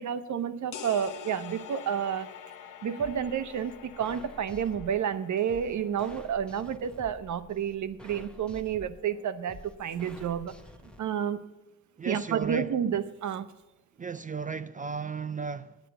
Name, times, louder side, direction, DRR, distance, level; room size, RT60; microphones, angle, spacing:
voice 1, 0.0-2.3 2.8-10.5 11.0-11.5 12.1-13.5, right 8 dB, 55° right, 0.9 m, -30 dB
sound 1, 0.7-6.3, left 9 dB, 70° left, 0.9 m, -46 dB
sound 2, 3.0-11.0, left 1 dB, 5° left, 0.9 m, -50 dB
voice 2, 12.0-12.8 14.0-15.9, right 5 dB, 25° right, 0.3 m, -35 dB
9.0 x 8.4 x 7.9 m
cardioid pair, 90°, 34 cm